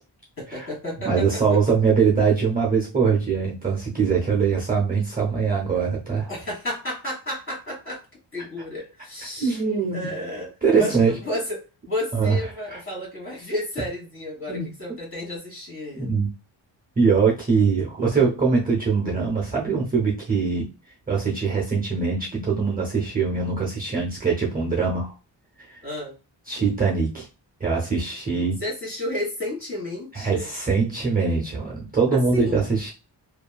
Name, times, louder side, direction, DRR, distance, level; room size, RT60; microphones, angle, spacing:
voice 1, 0.4-1.6 6.3-8.0 8.3-9.6 9.9-10.5 10.8-11.6 11.9-16.1 25.8-26.1 28.6-30.5 32.1-32.6, left 1 dB, 30° left, -3 dB, 1.6 m, -32 dB
voice 2, 1.0-6.3 9.4-10.1 10.6-11.1 12.1-12.4 12.7-12.8 14.5-14.7 16.0-16.3 17.0-20.7 21.1-25.1 26.5-27.3 27.6-28.6 30.1-32.9, right 5 dB, 20° right, -2 dB, 0.6 m, -22 dB
2.8 x 2.4 x 2.2 m, 0.30 s
wide cardioid pair, 140°, 45 cm